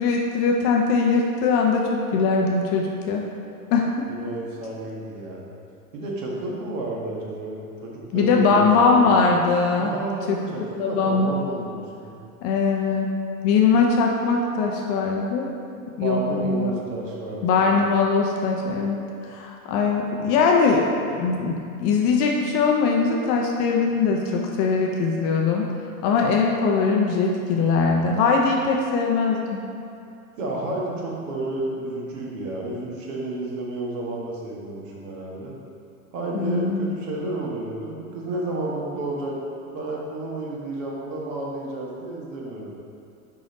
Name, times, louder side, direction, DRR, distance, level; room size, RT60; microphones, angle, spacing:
voice 1, 0.0-3.3 3.7-3.9 8.1-9.9 10.3-10.4 10.8-11.3 12.4-13.2 13.4-15.5 16.0-16.7 17.4-19.0 19.3-20.9 21.2-25.7 26.0-29.6 36.3-36.8, left 4 dB, 35° left, 0 dB, 0.5 m, -21 dB
voice 2, 4.1-5.5 5.9-9.1 9.8-12.2 16.0-17.7 30.4-35.5 36.1-39.3 39.7-42.7, right 2 dB, 55° right, -3 dB, 1.5 m, -31 dB
5.0 x 4.9 x 3.9 m, 2.6 s
hypercardioid pair, 105°, 45 cm